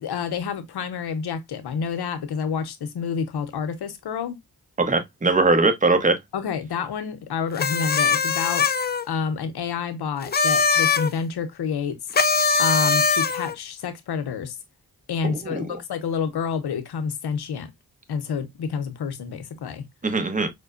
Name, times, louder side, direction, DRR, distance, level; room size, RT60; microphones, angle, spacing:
voice 1, 0.0-4.4 6.3-12.0 12.6-14.6 15.1-17.7 18.1-19.9, left 6 dB, 85° left, 0.7 m, -29 dB
voice 2, 4.8-6.2 15.2-15.7 20.0-20.5, right 3 dB, 20° right, 0.9 m, -21 dB
sound 1, 7.6-9.0 10.2-11.1 12.1-13.5, left 5 dB, 25° left, 0.4 m, -21 dB
4.9 x 2.2 x 2.4 m
cardioid pair, 45°, 38 cm